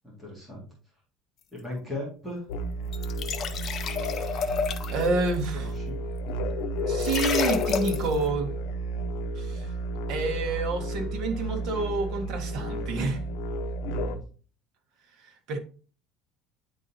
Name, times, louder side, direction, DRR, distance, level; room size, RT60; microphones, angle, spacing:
voice 1, 0.0-0.7 1.5-2.5 5.5-6.0 13.9-14.2, left 1 dB, ahead, 2.0 m, -37 dB
sound 1, 2.5-14.2, equal, 75° left, 0.7 m, -32 dB
sound 2, 2.9-5.1 7.0-8.1, left 6 dB, 35° left, 0.6 m, -30 dB
voice 2, 4.1-4.5 4.9-5.7 6.9-8.5 9.3-9.7 10.1-13.2 15.2-15.6, right 3 dB, 50° right, 1.2 m, -29 dB
9.4 x 4.0 x 2.7 m
cardioid pair, 160°, 0 cm